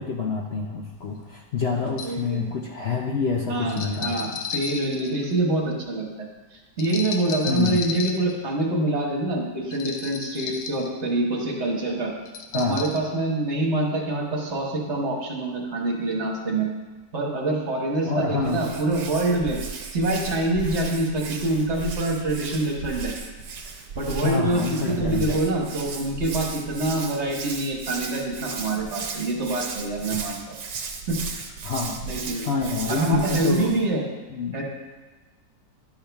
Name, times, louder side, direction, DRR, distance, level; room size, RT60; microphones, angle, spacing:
voice 1, 0.0-4.3 7.5-7.8 12.5-12.8 18.0-18.6 24.2-25.4 30.1-30.2 31.6-32.2 32.4-33.8 34.3-34.6, left 5 dB, 65° left, 0 dB, 0.6 m, -27 dB
sound 1, 1.0-1.1 1.9-2.2 3.7-5.5 6.8-8.3 9.7-10.9 12.3-13.0, left 6 dB, 90° left, 1.4 m, -34 dB
voice 2, 2.0-2.5 3.5-6.0 6.5-12.1 12.5-16.7 17.1-19.6 19.9-23.1 23.9-30.6 31.1-31.2 32.1-32.5 32.9-34.0 34.5-34.6, right 2 dB, 45° right, -1 dB, 1.6 m, -25 dB
Hands, 18.4-33.8, right 5 dB, 85° right, 1.5 m, -35 dB
11.0 x 5.8 x 3.4 m, 1.2 s
omnidirectional pair, 1.8 m